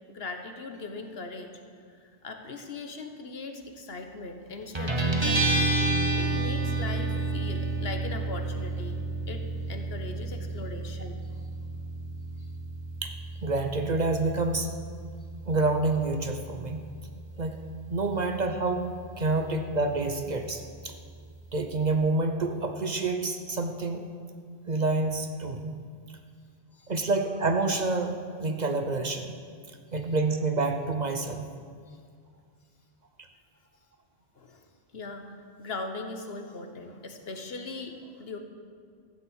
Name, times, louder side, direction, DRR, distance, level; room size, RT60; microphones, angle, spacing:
voice 1, 0.1-1.5 1.9-5.7 6.1-9.0 9.3-11.2 12.4-12.5 26.8-26.9 31.9-32.0 34.3-34.6 34.9-38.4, left 3 dB, 65° left, 5 dB, 1.4 m, -39 dB
Guitar, 4.8-22.0, right 3 dB, 25° right, 1.3 m, -32 dB
voice 2, 13.4-14.7 15.5-16.9 17.4-17.6 17.9-18.9 19.2-20.9 21.5-24.0 24.7-25.8 26.9-29.3 29.9-31.5, right 3 dB, 45° right, 5 dB, 0.9 m, -28 dB
13.5 x 7.3 x 8.1 m, 2.1 s
omnidirectional pair, 1.1 m